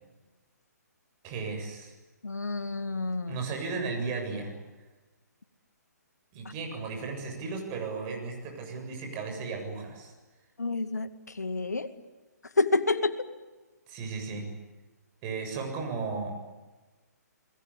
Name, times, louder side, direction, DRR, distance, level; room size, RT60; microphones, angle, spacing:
voice 1, 1.2-1.9 3.3-4.5 6.3-10.1 13.9-14.5 15.2-16.4, right 4 dB, 25° right, 3 dB, 7.4 m, -35 dB
voice 2, 2.2-3.4 10.6-11.1 11.4-11.9 12.6-13.1, left 3 dB, 70° left, 11 dB, 2.2 m, -28 dB
29.0 x 21.5 x 8.7 m, 1.2 s
figure-of-eight pair, 130°, 9 cm